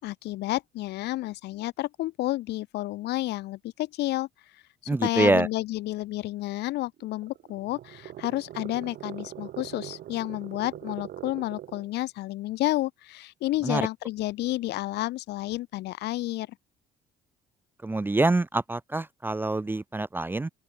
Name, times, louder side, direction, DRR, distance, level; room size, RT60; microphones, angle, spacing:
voice 1, 0.0-4.3 5.0-16.6, left 17 dB, 80° left, 7.2 m, -30 dB
voice 2, 4.9-5.5 13.6-13.8 17.8-20.5, right 2 dB, 10° right, 0.7 m, -25 dB
sound 1, 7.0-12.0, right 12 dB, 65° right, 3.7 m, -42 dB
open air
cardioid pair, 110°, 17 cm